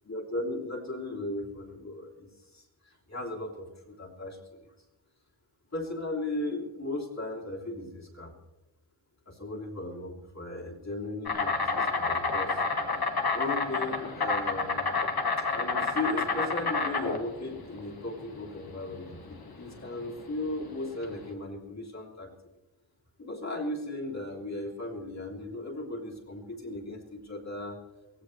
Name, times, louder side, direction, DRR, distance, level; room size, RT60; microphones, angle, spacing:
voice 1, 0.1-4.7 5.7-8.3 9.3-12.6 13.3-14.8 15.5-22.3 23.2-27.8, left 2 dB, 35° left, -3 dB, 3.1 m, -36 dB
Insect, 11.3-21.3, left 4 dB, 50° left, 1.8 m, -29 dB
23.0 x 16.5 x 3.2 m, 1.1 s
wide cardioid pair, 115°, 46 cm